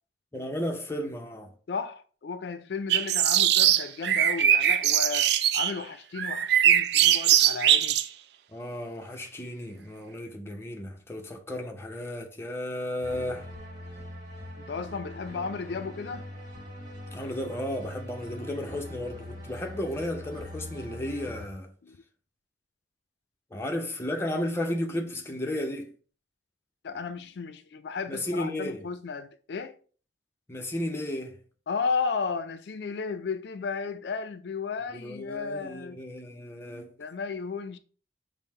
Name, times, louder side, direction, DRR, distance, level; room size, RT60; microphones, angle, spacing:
voice 1, 0.3-1.5 8.5-13.5 17.1-21.7 23.5-25.9 28.1-28.8 30.5-31.4 34.9-36.9, left 1 dB, 15° left, 0.6 m, -34 dB
voice 2, 1.7-8.0 14.6-16.2 21.8-22.0 26.8-29.8 31.7-36.0 37.0-37.8, left 5 dB, 65° left, 0.4 m, -34 dB
sound 1, 2.9-5.8 6.2-8.1, right 10 dB, 60° right, 0.3 m, -22 dB
sound 2, 13.0-21.5, left 1 dB, 25° right, 1.6 m, -42 dB
5.4 x 2.1 x 4.3 m
head